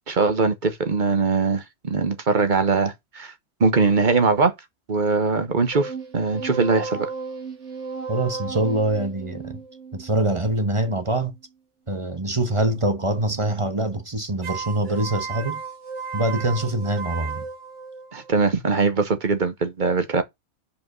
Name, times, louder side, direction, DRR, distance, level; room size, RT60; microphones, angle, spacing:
voice 1, 0.0-3.3 3.6-4.5 4.9-7.1 18.1-20.2, right 4 dB, 45° right, 1.1 m, -21 dB
sound 1, 5.7-11.1 14.4-18.4, right 5 dB, 70° right, 1.8 m, -34 dB
voice 2, 8.1-9.6 9.9-11.3 11.9-15.6 16.1-17.4, right 1 dB, 25° right, 1.1 m, -24 dB
5.2 x 5.2 x 6.1 m
omnidirectional pair, 1.3 m